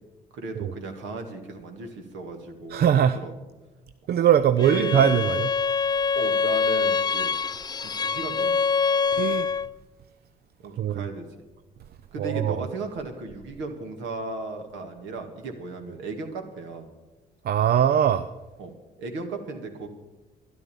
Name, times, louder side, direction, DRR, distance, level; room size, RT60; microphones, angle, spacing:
voice 1, 0.3-2.9 3.2-3.3 4.6-5.0 6.1-7.3 7.8-8.6 10.6-11.4 12.1-16.9 18.6-18.7 19.0-19.9, right 3 dB, 65° right, 5 dB, 2.0 m, -35 dB
voice 2, 2.7-3.2 4.1-5.5 9.1-9.5 10.8-11.1 12.2-12.6 17.4-18.3, right 9 dB, 50° right, 12 dB, 0.6 m, -21 dB
Bowed string instrument, 4.6-9.7, left 5 dB, 20° left, 0.5 m, -25 dB
12.5 x 11.0 x 7.1 m, 1.2 s
hypercardioid pair, 45°, 21 cm